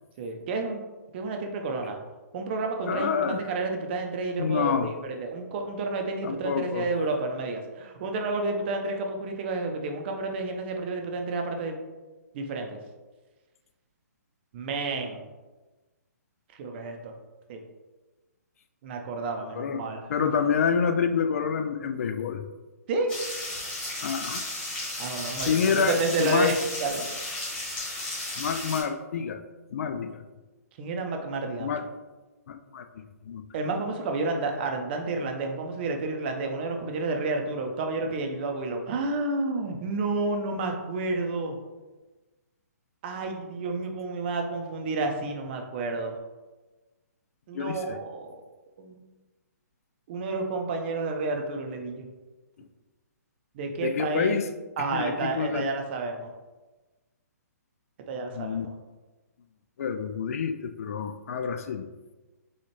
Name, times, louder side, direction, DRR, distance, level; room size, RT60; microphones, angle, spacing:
voice 1, 0.2-0.8 1.1-2.0 2.3-11.8 12.3-12.8 14.5-15.2 16.5-17.1 17.5-17.6 18.8-20.3 22.9-23.1 25.0-27.1 30.8-31.7 33.5-41.6 43.0-46.2 47.5-48.4 48.8-49.1 50.1-52.1 53.5-54.4 54.8-56.3 58.1-58.7, right 3 dB, 40° right, 3 dB, 0.6 m, -30 dB
voice 2, 2.9-3.4 4.4-4.9 6.2-6.9 19.6-19.8 20.1-22.4 24.0-24.4 25.5-26.5 28.4-29.4 29.7-30.2 31.6-31.8 32.5-32.8 33.3-33.4 47.5-48.0 53.8-54.4 54.9-55.7 58.3-58.7 59.8-61.9, left 6 dB, 55° left, 8 dB, 0.3 m, -28 dB
sound 1, 23.1-28.8, left 1 dB, 15° left, 1.4 m, -34 dB
4.1 x 2.4 x 3.1 m, 1.2 s
hypercardioid pair, 135°, 9 cm